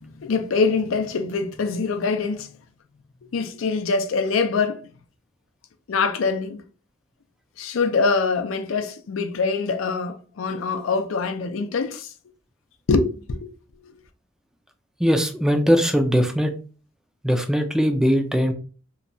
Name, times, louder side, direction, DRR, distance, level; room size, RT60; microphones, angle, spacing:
voice 1, 0.0-2.5 3.3-4.9 5.9-6.6 7.6-12.1 12.9-13.5, left 4 dB, 80° left, 0.4 m, -24 dB
voice 2, 15.0-16.5 17.2-18.5, equal, 5° right, 0.3 m, -20 dB
2.9 x 2.2 x 2.6 m
head